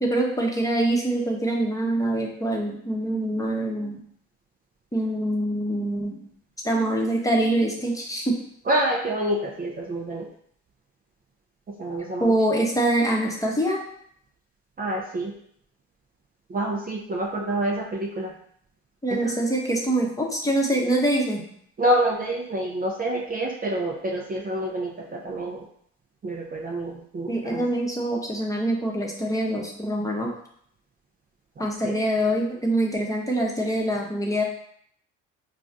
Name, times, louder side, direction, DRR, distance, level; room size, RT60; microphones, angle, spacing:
voice 1, 0.0-4.0 4.9-6.2 6.6-8.3 12.2-13.8 19.0-21.4 27.3-30.3 31.6-34.4, right 1 dB, 10° left, -1 dB, 0.9 m, -24 dB
voice 2, 8.7-10.3 11.8-12.3 14.8-15.3 16.5-18.3 19.1-19.3 21.8-25.7 26.2-27.7 31.6-32.0, right 1 dB, 25° right, -2 dB, 0.6 m, -27 dB
4.9 x 2.4 x 2.6 m, 0.66 s
hypercardioid pair, 55°, 36 cm